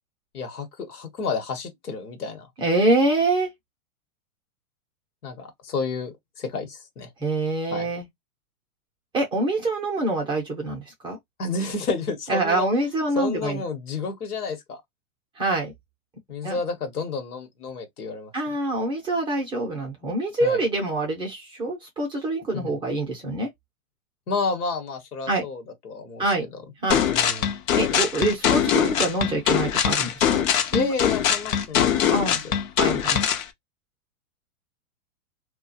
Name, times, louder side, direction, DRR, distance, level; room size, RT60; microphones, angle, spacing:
voice 1, 0.3-2.5 5.2-7.1 7.7-7.9 11.4-12.6 13.1-14.8 16.3-18.3 20.4-20.6 22.5-22.8 24.3-26.2 27.1-27.5 30.7-32.3, left 4 dB, 80° left, 1.1 m, -30 dB
voice 2, 2.6-3.5 7.2-8.1 9.1-11.2 12.3-13.6 15.4-15.7 16.4-16.6 18.3-23.5 25.3-25.4 26.2-26.4 26.8-27.0 27.8-30.5 30.7-30.9 32.1-32.4 32.8-33.2, right 2 dB, 10° right, 0.5 m, -25 dB
sound 1, 26.9-33.5, left 9 dB, 65° left, 0.7 m, -22 dB
2.3 x 2.2 x 2.7 m
hypercardioid pair, 120°, 44 cm